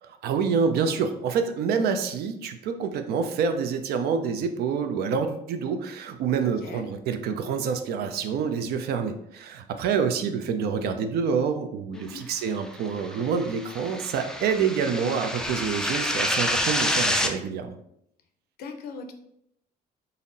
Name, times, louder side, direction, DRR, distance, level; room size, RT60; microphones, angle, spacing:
voice 1, 0.0-17.8, right 6 dB, 70° right, 7 dB, 0.5 m, -27 dB
voice 2, 6.4-6.8 11.9-12.2 18.6-19.1, left 4 dB, 65° left, 6 dB, 0.6 m, -40 dB
sound 1, 12.9-17.3, left 1 dB, 5° left, 0.3 m, -28 dB
4.0 x 2.0 x 3.9 m, 0.75 s
cardioid pair, 110°, 17 cm